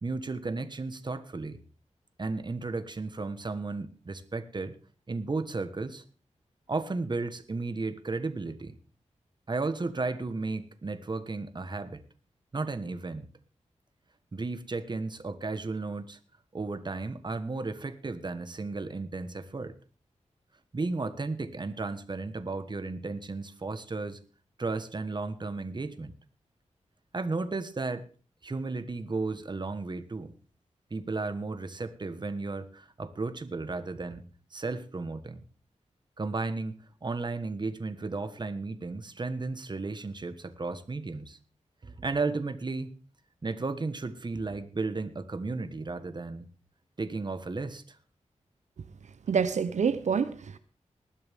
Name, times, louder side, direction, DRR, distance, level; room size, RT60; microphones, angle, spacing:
voice 1, 0.0-1.6 2.2-4.7 5.1-6.0 6.7-8.8 9.5-12.0 12.5-13.3 14.3-16.2 16.5-19.7 20.7-24.2 24.6-26.1 27.1-28.1 28.4-30.3 30.9-34.2 34.5-35.4 36.2-41.4 41.8-42.9 43.4-46.5 47.0-48.0, right 3 dB, 40° right, 10 dB, 1.4 m, -34 dB
voice 2, 49.3-50.6, right 6 dB, 75° right, 11 dB, 0.8 m, -27 dB
19.5 x 12.0 x 3.6 m, 0.38 s
wide cardioid pair, 95°, 12 cm